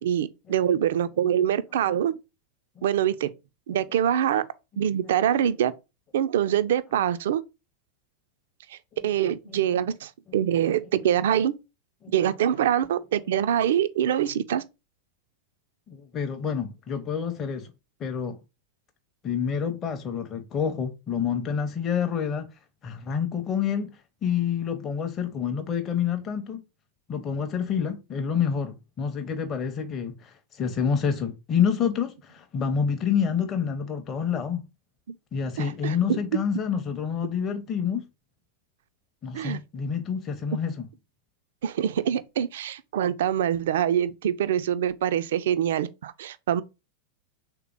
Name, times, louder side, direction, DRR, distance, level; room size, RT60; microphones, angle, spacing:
voice 1, 0.0-2.1 2.8-3.3 3.7-4.5 4.8-5.7 6.1-7.4 8.7-8.8 9.0-11.6 12.1-14.6 35.6-36.2 39.3-39.6 41.6-46.6, right 10 dB, 60° right, 0.3 m, -24 dB
voice 2, 15.9-17.7 18.0-18.4 19.2-22.5 22.8-26.6 27.1-34.6 35.3-38.1 39.2-40.8, left 7 dB, 25° left, 0.6 m, -28 dB
3.3 x 2.9 x 3.6 m
figure-of-eight pair, 90°, 0 cm